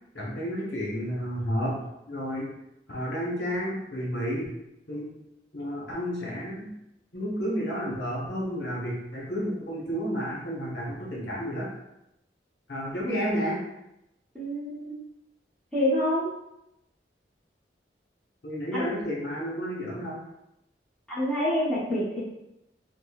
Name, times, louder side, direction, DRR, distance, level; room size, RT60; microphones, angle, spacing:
voice 1, 0.1-1.8 2.1-2.5 2.9-4.5 4.9-5.1 5.5-6.7 7.1-11.7 12.7-13.6 18.4-20.2, equal, 65° left, -4 dB, 1.0 m, -31 dB
voice 2, 14.3-14.9 15.7-16.3 18.7-18.8 21.1-22.2, left 1 dB, 5° left, -10 dB, 0.9 m, -27 dB
5.0 x 2.1 x 2.3 m, 0.86 s
head